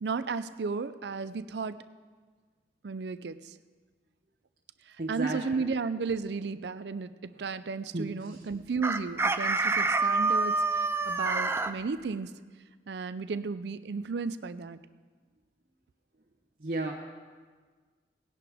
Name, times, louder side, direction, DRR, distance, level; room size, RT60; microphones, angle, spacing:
voice 1, 0.0-1.8 2.8-3.5 4.9-12.4 12.9-14.8, right 4 dB, 75° right, 13 dB, 0.5 m, -34 dB
voice 2, 5.0-5.6 7.9-8.4 16.6-16.9, right 2 dB, 55° right, -1 dB, 1.0 m, -34 dB
Chicken rooster, 8.8-11.7, right 3 dB, 15° right, 0.4 m, -27 dB
18.5 x 10.5 x 3.5 m, 1.5 s
head